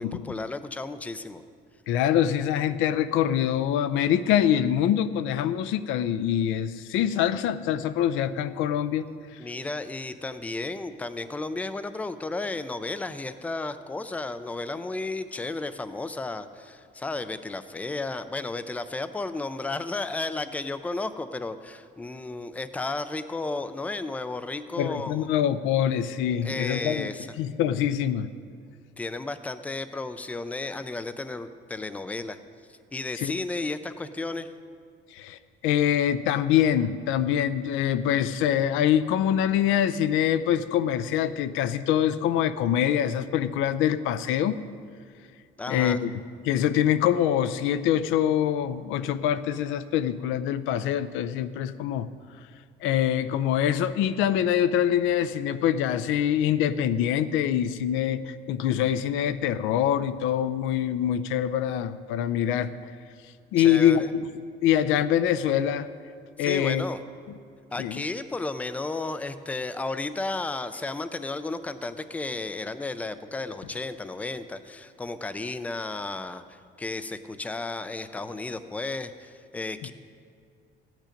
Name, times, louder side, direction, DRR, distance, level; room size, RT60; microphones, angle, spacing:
voice 1, 0.0-1.4 9.4-25.3 26.4-27.3 29.0-32.4 32.9-34.5 45.6-46.1 63.6-64.1 66.4-67.0 67.7-79.9, left 3 dB, 5° left, 12 dB, 0.3 m, -33 dB
voice 2, 1.9-9.1 9.3-9.4 24.8-27.1 27.4-28.3 33.2-33.3 35.1-44.6 45.7-46.1 46.4-52.1 52.8-62.9 63.5-64.3 64.6-65.9 66.4-66.8 67.8-68.0, left 10 dB, 80° left, 13 dB, 0.6 m, -24 dB
15.0 x 9.1 x 5.1 m, 2.2 s
cardioid pair, 165°, 20 cm